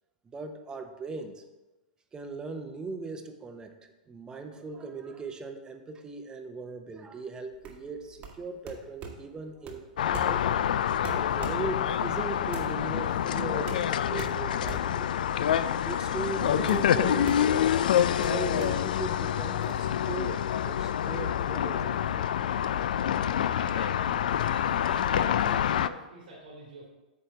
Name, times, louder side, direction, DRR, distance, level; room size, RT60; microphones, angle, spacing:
voice 1, 0.2-1.4 2.1-3.8 4.1-10.7 11.2-15.1 15.8-17.5 18.2-22.2 22.7-22.9 23.2-23.4, right 4 dB, 15° right, 6 dB, 0.7 m, -39 dB
sound 1, 7.5-19.7, right 5 dB, 30° right, 1.2 m, -44 dB
sound 2, 10.0-25.9, left 10 dB, 75° left, 0.3 m, -27 dB
voice 2, 23.5-26.8, right 2 dB, 90° right, -6 dB, 2.5 m, -45 dB
8.5 x 3.2 x 6.6 m, 1.1 s
hypercardioid pair, 135°, 5 cm